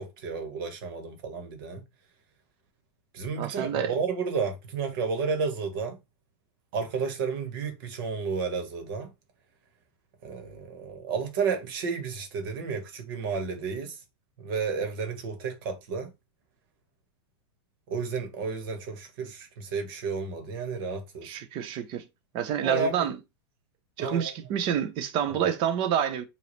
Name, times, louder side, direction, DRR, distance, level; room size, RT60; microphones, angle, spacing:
voice 1, 0.0-1.8 3.1-6.0 6.7-9.1 10.2-14.0 14.4-16.1 17.9-21.3 22.6-23.1 24.0-24.3, right 5 dB, 55° right, 1.6 m, -32 dB
voice 2, 3.4-3.9 21.2-22.1 22.3-23.2 24.0-26.2, right 9 dB, 35° right, 0.8 m, -28 dB
4.8 x 2.7 x 3.3 m
hypercardioid pair, 140°, 14 cm